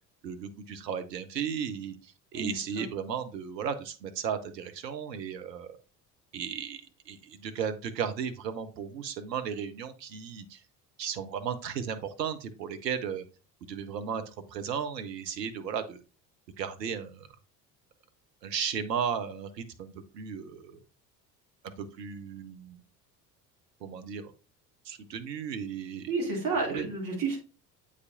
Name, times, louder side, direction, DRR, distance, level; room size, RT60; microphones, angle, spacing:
voice 1, 0.2-5.7 6.3-6.8 7.1-10.6 11.0-13.2 13.7-16.0 16.6-17.3 18.4-20.8 21.8-22.8 23.8-24.3 24.8-26.1 26.7-26.9, right 7 dB, 75° right, 8 dB, 0.8 m, -35 dB
voice 2, 2.3-2.8 26.1-27.4, right 3 dB, 40° right, -1 dB, 3.0 m, -31 dB
8.0 x 5.2 x 2.7 m, 0.32 s
figure-of-eight pair, 60°, 50 cm